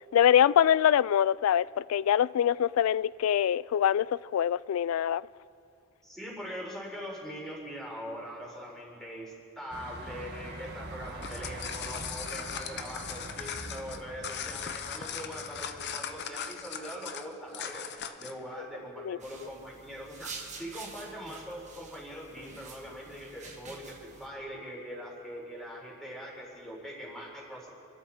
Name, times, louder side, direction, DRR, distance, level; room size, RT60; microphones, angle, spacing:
voice 1, 0.0-4.1 4.3-5.3 19.0-19.2, left 9 dB, 85° left, 0.3 m, -24 dB
voice 2, 6.0-27.7, equal, ahead, 4.0 m, -42 dB
sound 1, 9.7-16.2, right 1 dB, 55° right, 1.6 m, -44 dB
sound 2, 11.1-18.4, left 8 dB, 55° left, 0.8 m, -39 dB
sound 3, 19.2-24.3, right 4 dB, 35° right, 1.5 m, -47 dB
27.5 x 12.5 x 4.3 m
head